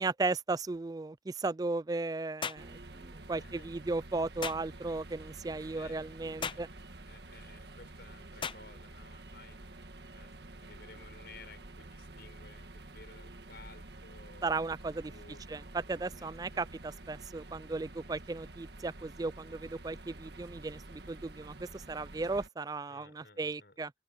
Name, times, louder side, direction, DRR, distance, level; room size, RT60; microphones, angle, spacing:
voice 1, 0.0-6.7 14.4-15.1 15.5-23.9, right 3 dB, 20° right, 0.3 m, -36 dB
sound 1, 2.4-2.7 4.4-4.6 6.4-6.7 8.4-8.6, left 6 dB, 25° left, 0.6 m, -37 dB
sound 2, 2.6-22.5, right 2 dB, 70° right, 1.6 m, -49 dB
voice 2, 3.3-3.7 5.7-6.0 6.4-6.6 7.0-9.6 10.1-14.7 15.1-15.5 16.1-16.7 22.9-23.8, left 3 dB, 60° left, 6.9 m, -56 dB
open air
head